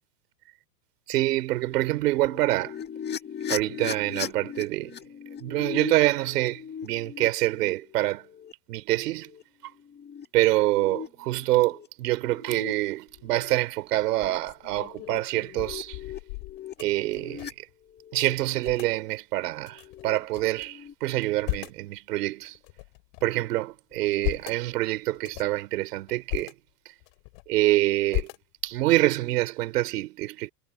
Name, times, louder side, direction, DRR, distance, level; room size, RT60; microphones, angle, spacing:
voice 1, 1.1-2.8 3.5-4.9 5.4-8.2 8.7-9.3 10.3-16.0 16.8-17.6 18.1-22.6 23.2-26.5 27.5-28.3 28.6-30.5, right 17 dB, 70° right, 4.2 m, -26 dB
sound 1, 2.1-8.5 9.2-9.4 9.8-10.2 10.7-11.9 12.3-12.7 13.2-13.5 14.2-14.4 14.7-17.5 17.9-18.3 19.7-20.2 20.6-20.9, left 8 dB, 20° left, 2.0 m, -39 dB
sound 2, 13.1-13.5 14.0-17.7 18.0-18.1 18.3-18.9 19.6-20.7 21.1-21.9 22.4-23.4 23.9-24.6 25.1-25.6 26.1-26.5 27.0-27.7 28.1-28.8, left 37 dB, 55° left, 4.4 m, -36 dB
supercardioid pair, 135°, 48 cm